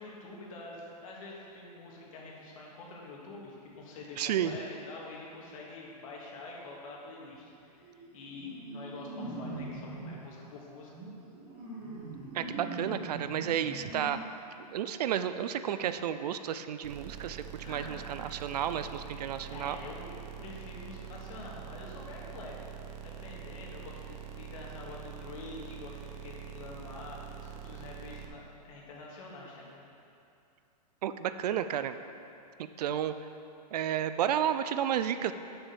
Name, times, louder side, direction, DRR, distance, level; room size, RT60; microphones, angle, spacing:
voice 1, 0.0-10.9 17.6-18.1 19.5-20.1 20.4-29.8, left 3 dB, 55° left, -3 dB, 2.1 m, -46 dB
voice 2, 4.2-4.5 12.3-14.2 14.6-19.8 31.0-32.0 32.8-33.1 33.7-35.3, right 10 dB, 70° right, 11 dB, 0.5 m, -32 dB
sound 1, 7.3-7.5 7.8-10.3 10.9-14.1, right 2 dB, 25° right, 1.9 m, -42 dB
sound 2, 16.8-28.3, right 8 dB, 50° right, 0.9 m, -45 dB
7.1 x 5.7 x 6.8 m, 2.6 s
hypercardioid pair, 155°, 21 cm